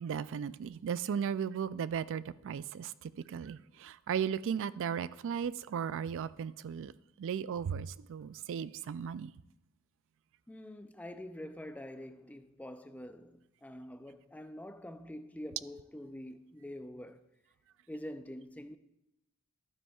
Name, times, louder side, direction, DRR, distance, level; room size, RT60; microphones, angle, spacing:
voice 1, 0.0-6.9 7.2-9.3, right 7 dB, 60° right, 0.3 m, -36 dB
voice 2, 10.5-17.2 17.9-18.8, left 1 dB, 5° left, 0.4 m, -46 dB
12.0 x 9.7 x 2.4 m
head